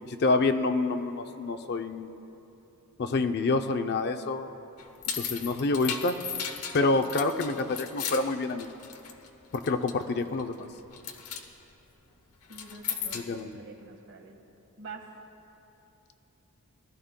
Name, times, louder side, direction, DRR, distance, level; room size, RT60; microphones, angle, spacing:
voice 1, 0.1-2.1 3.0-4.5 5.2-6.2 6.7-8.7 9.5-10.7 13.1-13.5, left 3 dB, 50° left, 8 dB, 0.5 m, -27 dB
sound 1, 4.8-9.3 9.5-10.0 10.4-10.6 10.9-11.4 12.4-13.4, left 8 dB, 85° left, 0.9 m, -36 dB
voice 2, 12.5-14.4 14.8-15.0, right 4 dB, 60° right, 3 dB, 1.2 m, -46 dB
20.0 x 12.5 x 2.2 m, 2.9 s
head